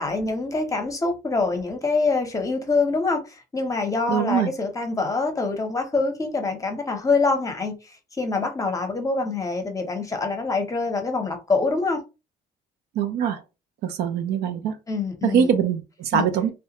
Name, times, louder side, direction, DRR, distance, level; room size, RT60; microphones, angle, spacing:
voice 1, 0.0-3.2 3.5-7.7 8.2-12.0 14.9-15.5 16.1-16.3, left 3 dB, 20° left, 0.7 m, -25 dB
voice 2, 4.1-4.5 13.0-13.4 13.8-14.7 15.2-16.5, right 8 dB, 70° right, 0.5 m, -23 dB
2.3 x 2.2 x 2.9 m
cardioid pair, 110°, 17 cm